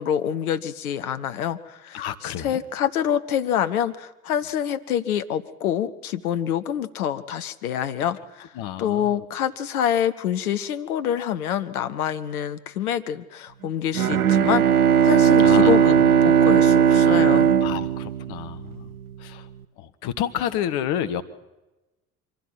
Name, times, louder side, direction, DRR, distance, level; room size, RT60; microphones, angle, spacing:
voice 1, 0.0-8.5 8.8-14.6 15.0-17.5, left 9 dB, 80° left, 11 dB, 0.9 m, -26 dB
voice 2, 1.9-2.6 8.5-9.2 15.4-16.1 17.6-18.9 19.2-19.5 19.8-21.2, left 10 dB, 65° left, 12 dB, 1.5 m, -30 dB
Bowed string instrument, 13.9-18.9, right 8 dB, 90° right, 0.8 m, -17 dB
24.5 x 15.5 x 7.6 m, 1.0 s
figure-of-eight pair, 55°, 42 cm